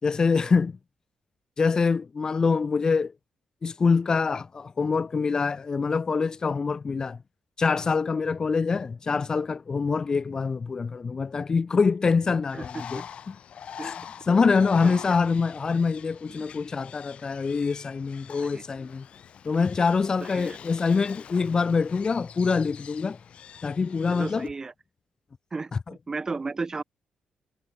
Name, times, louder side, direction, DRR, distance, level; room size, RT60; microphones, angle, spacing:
voice 1, 0.0-0.7 1.6-3.1 3.6-7.2 7.6-13.4 13.8-14.0 14.3-19.1 19.4-23.2 23.6-24.5, left 5 dB, 30° left, 3.6 m, -25 dB
Bird, 12.5-24.5, left 8 dB, 55° left, 7.9 m, -44 dB
voice 2, 12.5-13.0 13.8-13.9 14.8-15.0 18.4-18.6 20.3-20.6 24.1-24.7 25.5-26.8, right 4 dB, 25° right, 2.0 m, -34 dB
cardioid pair, 135°, 2 cm